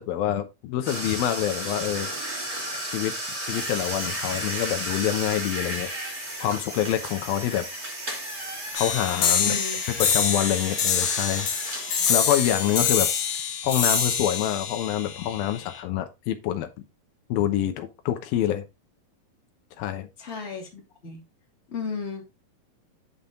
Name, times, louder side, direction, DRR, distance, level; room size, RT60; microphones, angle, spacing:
voice 1, 0.0-2.1 2.8-5.9 6.4-7.7 8.7-11.5 12.1-13.1 13.6-16.7 17.3-18.6 19.8-20.1, left 11 dB, 85° left, 2.8 m, -26 dB
sound 1, 0.8-12.8, right 1 dB, 15° right, 2.1 m, -34 dB
sound 2, 8.8-15.8, left 7 dB, 65° left, 2.8 m, -26 dB
voice 2, 9.4-9.8 20.2-21.2 21.7-22.2, left 5 dB, 20° left, 2.5 m, -34 dB
8.7 x 5.7 x 3.7 m
omnidirectional pair, 4.1 m